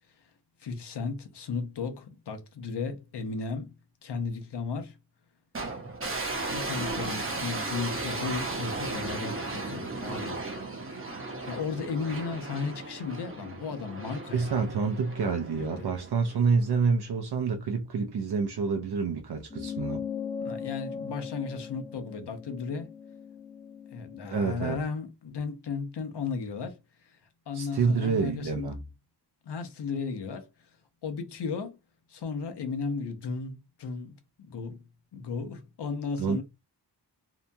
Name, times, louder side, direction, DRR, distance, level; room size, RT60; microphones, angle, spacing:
voice 1, 0.6-3.7 4.0-5.0 6.5-10.4 11.5-14.6 15.5-15.9 20.4-22.9 23.9-27.2 27.5-28.8 29.4-30.5 31.0-31.8 32.1-34.8 35.1-36.4, left 5 dB, 75° left, 0.7 m, -35 dB
sound 1, 5.5-16.8, right 2 dB, 30° right, 0.8 m, -36 dB
voice 2, 14.3-20.0 24.3-24.8 27.5-28.8 36.2-36.4, right 5 dB, 70° right, 0.6 m, -28 dB
sound 2, 19.5-24.3, left 7 dB, 15° left, 0.3 m, -38 dB
2.8 x 2.2 x 2.6 m
wide cardioid pair, 65°, 41 cm